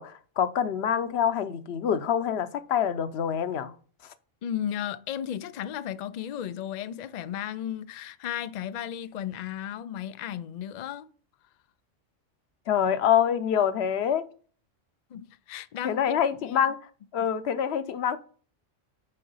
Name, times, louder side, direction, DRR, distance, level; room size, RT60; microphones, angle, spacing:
voice 1, 0.0-3.7 12.7-14.3 15.8-16.8 17.1-18.2, left 8 dB, 60° left, 0.9 m, -26 dB
voice 2, 4.4-11.1 15.1-16.0 16.4-16.7 17.2-17.3, left 10 dB, 85° left, 0.3 m, -34 dB
6.6 x 4.7 x 5.5 m
omnidirectional pair, 1.3 m